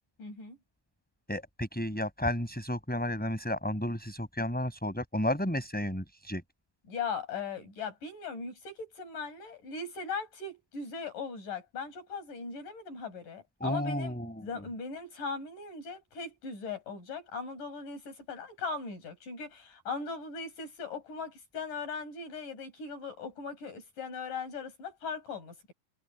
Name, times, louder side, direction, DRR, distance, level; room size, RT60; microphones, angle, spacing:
voice 1, 0.2-0.6 6.9-14.1 14.4-25.7, left 4 dB, 70° left, 7.9 m, -39 dB
voice 2, 1.3-6.4 13.6-14.5, left 1 dB, ahead, 7.4 m, -32 dB
omnidirectional pair, 3.9 m